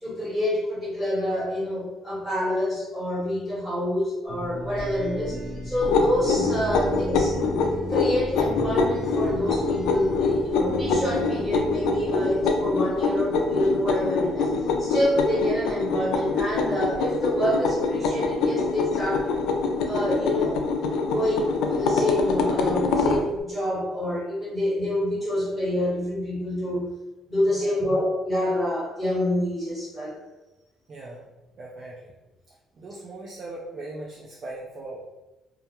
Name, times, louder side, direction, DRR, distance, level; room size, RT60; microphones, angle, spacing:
voice 1, 0.0-5.4 5.6-7.4 7.9-14.5 14.8-19.3 19.8-20.7 21.0-26.9 27.3-30.2, left 1 dB, 5° right, -10 dB, 1.3 m, -27 dB
sound 1, 4.3-13.0, right 2 dB, 60° right, 0.8 m, -35 dB
sound 2, 5.8-23.2, left 4 dB, 90° left, 0.3 m, -25 dB
voice 2, 30.9-31.2 31.6-32.1 32.8-35.1, right 2 dB, 35° right, -4 dB, 0.3 m, -39 dB
2.3 x 2.1 x 2.8 m, 1.0 s
cardioid pair, 165°, 0 cm